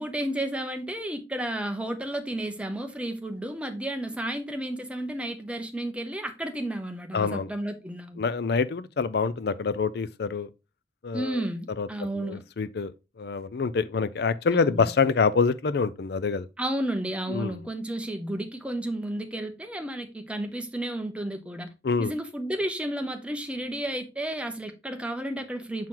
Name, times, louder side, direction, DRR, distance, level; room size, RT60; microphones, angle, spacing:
voice 1, 0.0-8.2 11.1-12.4 14.5-14.9 16.6-21.7 22.0-25.9, right 1 dB, 5° right, 0.8 m, -32 dB
voice 2, 7.1-7.5 8.2-10.5 11.0-11.5 11.8-11.9 12.1-12.9 13.2-16.5 17.3-17.6 21.8-22.1, left 5 dB, 60° left, 0.4 m, -26 dB
7.5 x 4.5 x 3.8 m
head